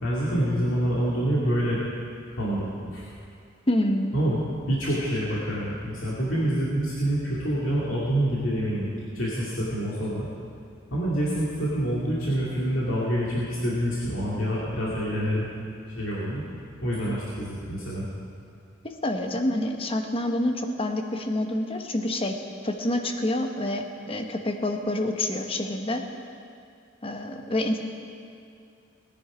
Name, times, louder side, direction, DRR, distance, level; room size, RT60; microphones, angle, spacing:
voice 1, 0.0-1.8 2.4-3.1 4.1-4.4 4.7-10.3 10.9-15.5 15.9-16.4 16.8-18.1, equal, 85° left, -7 dB, 2.3 m, -27 dB
voice 2, 3.7-4.1 18.8-22.4 22.6-26.1 27.0-27.8, left 1 dB, 30° left, 4 dB, 1.0 m, -27 dB
19.5 x 10.0 x 5.0 m, 2.4 s
head